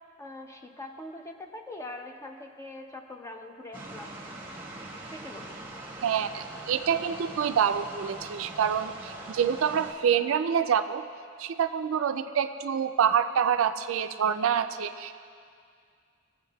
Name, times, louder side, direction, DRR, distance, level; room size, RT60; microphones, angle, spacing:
voice 1, 0.2-4.2 5.1-5.7, left 2 dB, 15° left, 4 dB, 0.5 m, -43 dB
sound 1, 3.7-9.9, right 2 dB, 10° right, 1.0 m, -42 dB
voice 2, 6.0-11.0 11.4-15.1, right 8 dB, 70° right, 10 dB, 0.4 m, -26 dB
18.0 x 7.8 x 2.3 m, 2.2 s
head